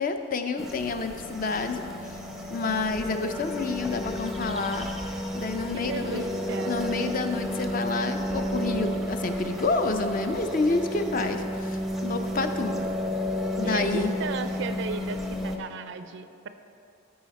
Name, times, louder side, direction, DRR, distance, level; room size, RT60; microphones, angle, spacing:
voice 1, 0.0-2.2 2.5-6.2 6.7-12.9 13.6-14.1, left 3 dB, 40° left, 7 dB, 0.5 m, -29 dB
sound 1, 0.6-15.6, equal, ahead, 0.5 m, -32 dB
voice 2, 5.7-6.7 13.6-16.5, right 5 dB, 60° right, 10 dB, 0.4 m, -35 dB
13.5 x 4.8 x 4.1 m, 2.7 s
head